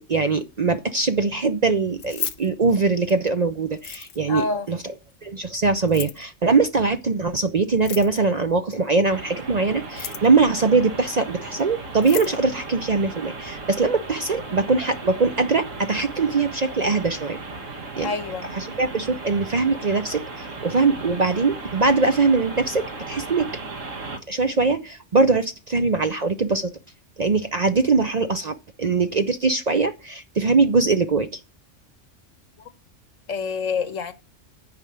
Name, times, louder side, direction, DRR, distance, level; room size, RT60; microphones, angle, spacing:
voice 1, 0.0-4.8 5.2-17.4 18.0-18.1 18.5-23.5 24.3-26.7 27.2-31.4, right 4 dB, 45° right, 0.6 m, -22 dB
Keys jangling, 1.9-3.3 3.7-4.4 5.8-6.3 7.7-8.4 9.8-10.4 11.6-11.7 11.9-12.4, left 7 dB, 60° left, 1.0 m, -34 dB
voice 2, 4.3-4.7 18.0-18.5 33.3-34.1, left 4 dB, 80° left, 1.4 m, -27 dB
sound 1, 9.0-24.2, right 3 dB, 75° right, 1.7 m, -36 dB
9.5 x 5.0 x 7.9 m
omnidirectional pair, 1.3 m